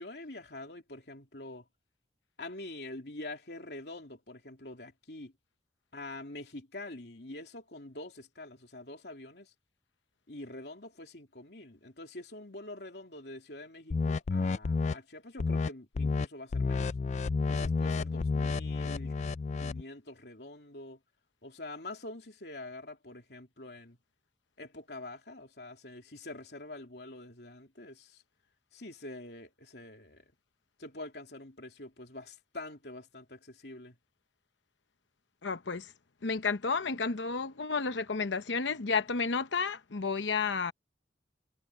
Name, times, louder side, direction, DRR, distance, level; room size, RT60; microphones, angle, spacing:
voice 1, 0.0-1.7 2.4-5.3 5.9-9.5 10.3-16.9 17.5-19.1 19.6-21.0 21.4-24.0 24.6-28.2 28.7-30.3 30.8-33.9, left 2 dB, 65° left, 3.3 m, -45 dB
sound 1, 13.9-14.9 15.4-15.7 16.0-16.3 16.5-19.8, left 4 dB, 40° left, 0.3 m, -30 dB
voice 2, 35.4-35.9 36.2-40.7, left 4 dB, 85° left, 0.9 m, -31 dB
head